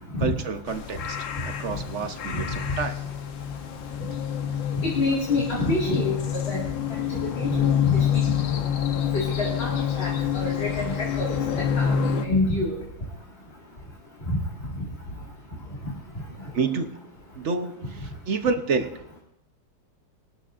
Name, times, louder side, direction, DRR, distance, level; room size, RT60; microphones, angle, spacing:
voice 1, 0.2-3.0 16.5-17.0 17.3-19.2, right 4 dB, 50° right, 7 dB, 0.9 m, -29 dB
sound 1, 0.7-12.3, left 8 dB, 75° left, 1.7 m, -27 dB
voice 2, 4.8-6.6 7.1-8.3 9.1-11.9 12.2-12.7, left 2 dB, 30° left, -4 dB, 2.2 m, -27 dB
22.0 x 12.5 x 2.5 m, 0.77 s
omnidirectional pair, 2.1 m